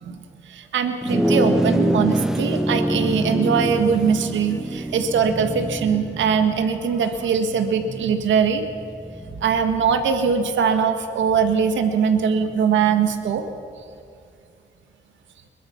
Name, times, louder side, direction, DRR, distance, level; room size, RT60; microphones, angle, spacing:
voice 1, 0.5-8.6 9.4-13.4, right 6 dB, 70° right, 7 dB, 1.9 m, -21 dB
sound 1, 1.0-10.6, equal, ahead, 0.6 m, -26 dB
22.0 x 21.5 x 5.9 m, 2.5 s
cardioid pair, 90°, 20 cm